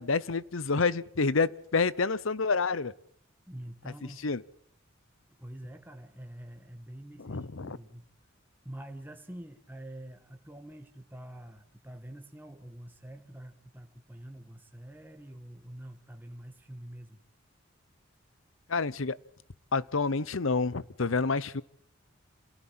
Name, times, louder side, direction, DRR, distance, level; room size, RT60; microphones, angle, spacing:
voice 1, 0.0-2.9 4.2-4.4 7.2-7.8 18.7-19.2 19.7-21.6, left 4 dB, 75° left, 0.8 m, -28 dB
voice 2, 3.5-4.3 5.3-8.0 8.6-17.2, right 1 dB, 10° right, 1.7 m, -46 dB
27.5 x 17.0 x 7.5 m
head